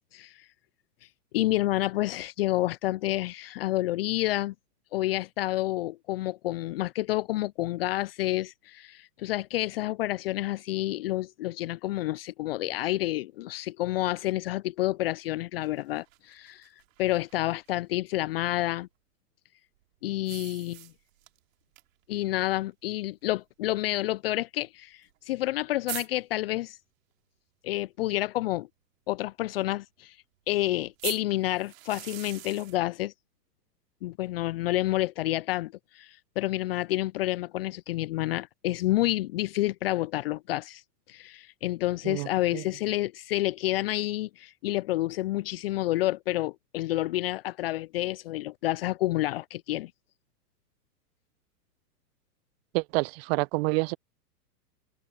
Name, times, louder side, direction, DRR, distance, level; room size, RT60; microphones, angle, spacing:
voice 1, 1.3-4.5 4.9-16.7 17.0-18.9 20.0-20.9 22.1-26.8 27.6-28.7 29.1-30.2 30.5-33.1 34.0-40.8 41.1-49.9, left 16 dB, 40° left, 0.5 m, -29 dB
sound 1, 15.6-17.7 20.2-21.4 21.8-21.9 22.2-22.3 23.2-23.3 25.1-25.2 25.4-25.5 25.9-26.1 31.0-32.8, right 16 dB, 55° right, 3.1 m, -41 dB
voice 2, 52.7-54.0, right 27 dB, 35° right, 1.0 m, -27 dB
hypercardioid pair, 110°, 49 cm